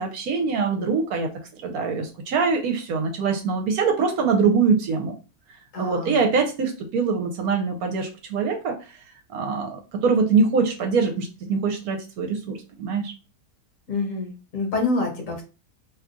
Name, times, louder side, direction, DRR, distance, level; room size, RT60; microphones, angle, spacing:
voice 1, 0.0-5.1 5.8-9.0 9.3-13.1, right 5 dB, 70° right, 4 dB, 1.0 m, -23 dB
voice 2, 5.7-6.3 13.9-15.4, left 3 dB, 55° left, 1 dB, 1.2 m, -27 dB
2.8 x 2.4 x 3.7 m, 0.33 s
omnidirectional pair, 1.8 m